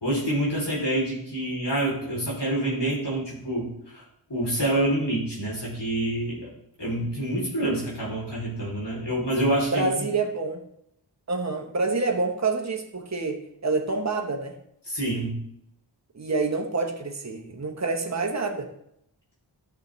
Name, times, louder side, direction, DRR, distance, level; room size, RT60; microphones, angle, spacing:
voice 1, 0.0-4.0 4.3-6.5 6.8-10.1 14.9-15.4, right 1 dB, 60° left, -5 dB, 3.1 m, -27 dB
voice 2, 9.7-10.6 11.3-14.5 16.1-18.7, right 3 dB, 35° right, 2 dB, 1.0 m, -27 dB
13.0 x 6.6 x 3.1 m, 0.77 s
wide cardioid pair, 40°, 45 cm